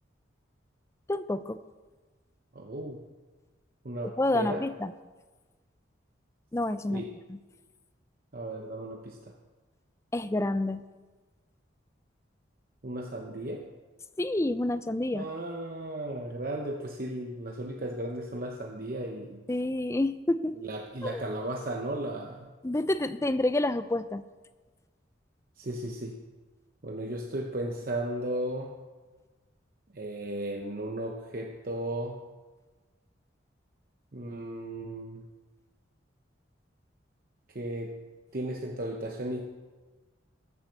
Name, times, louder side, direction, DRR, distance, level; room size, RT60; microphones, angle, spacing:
voice 1, 1.1-1.6 4.2-4.9 6.5-7.0 10.1-10.8 14.2-15.3 19.5-20.6 21.0-21.2 22.6-24.2, left 1 dB, 15° left, 12 dB, 0.4 m, -28 dB
voice 2, 2.5-3.0 3.8-4.6 6.9-7.1 8.3-9.3 12.8-13.7 15.1-19.4 20.5-22.5 25.6-26.2 26.8-28.7 29.9-32.2 34.1-35.2 37.5-37.9 38.3-39.5, right 1 dB, 45° right, 2 dB, 0.9 m, -35 dB
14.5 x 7.2 x 6.5 m, 1.3 s
head